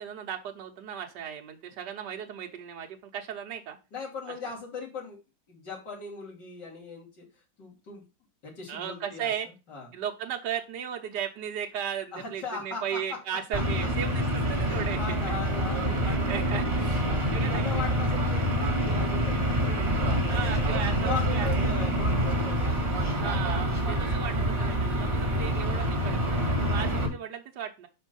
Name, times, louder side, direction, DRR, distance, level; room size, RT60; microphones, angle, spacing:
voice 1, 0.0-3.8 8.7-9.5 9.9-15.4 16.0-17.0 17.3-17.7 20.3-21.7 23.1-27.9, right 8 dB, 70° right, 2 dB, 1.5 m, -36 dB
voice 2, 3.9-5.2 5.5-7.3 7.6-8.0 8.4-9.3 9.7-9.9 12.1-13.2 13.5-13.9 14.7-20.5 21.0-23.3, left 4 dB, 65° left, -3 dB, 3.3 m, -40 dB
sound 1, 13.5-27.1, equal, 30° right, 2.2 m, -26 dB
5.5 x 5.0 x 5.3 m, 0.28 s
omnidirectional pair, 2.0 m